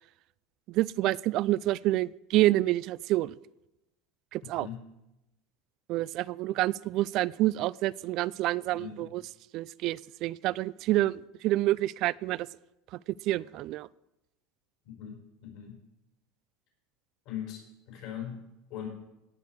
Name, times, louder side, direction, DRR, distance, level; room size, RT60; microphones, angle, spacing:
voice 1, 0.7-3.4 4.3-4.7 5.9-9.2 9.5-12.5 12.9-13.9, right 16 dB, 55° right, 20 dB, 0.3 m, -28 dB
voice 2, 4.4-4.8 8.8-9.1 14.8-15.8 17.3-18.9, left 9 dB, 65° left, 1 dB, 5.6 m, -41 dB
18.0 x 6.8 x 4.6 m, 0.92 s
supercardioid pair, 110°, 0 cm